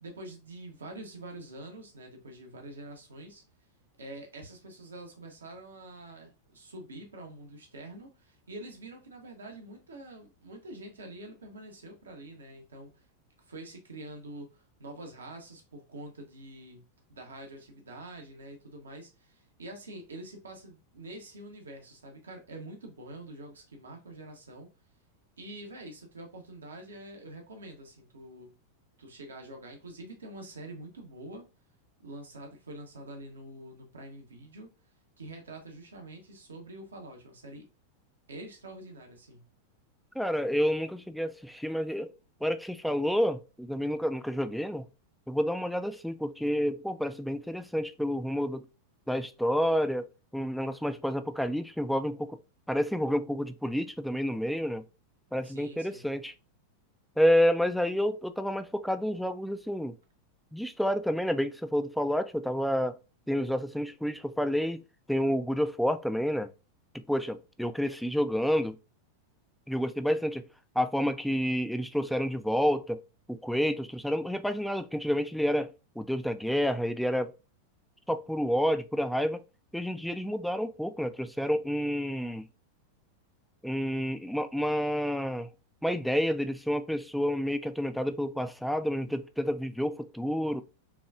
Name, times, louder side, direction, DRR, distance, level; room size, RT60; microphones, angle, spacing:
voice 1, 0.0-3.4 4.0-13.1 13.4-16.8 17.1-24.7 25.4-28.5 29.0-31.5 32.0-34.7 35.2-37.7 38.3-39.5 55.4-56.0, right 1 dB, 70° right, 0.9 m, -46 dB
voice 2, 40.2-42.1 42.4-44.9 45.3-48.6 49.1-50.1 50.3-52.4 52.7-54.8 55.3-56.3 57.2-59.9 60.5-63.0 63.3-64.8 65.1-66.5 66.9-68.8 69.7-70.4 70.8-73.0 73.3-75.7 76.0-77.3 78.1-79.4 79.7-82.5 83.6-85.5 85.8-90.6, equal, ahead, 0.3 m, -29 dB
5.6 x 2.3 x 2.4 m
figure-of-eight pair, 90°, 0 cm